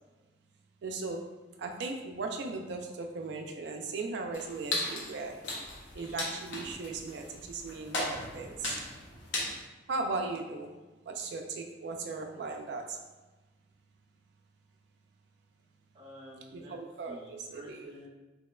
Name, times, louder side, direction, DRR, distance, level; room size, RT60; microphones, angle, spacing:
voice 1, 0.8-1.3 1.6-5.4 5.9-8.8 9.9-10.7 11.0-13.0 16.5-17.9, right 3 dB, 65° right, 3 dB, 0.3 m, -37 dB
sound 1, 4.3-9.6, left 2 dB, 75° left, 0.6 m, -37 dB
voice 2, 15.9-16.8 17.1-18.1, equal, 30° right, -6 dB, 0.7 m, -50 dB
2.9 x 2.0 x 2.3 m, 1.1 s
head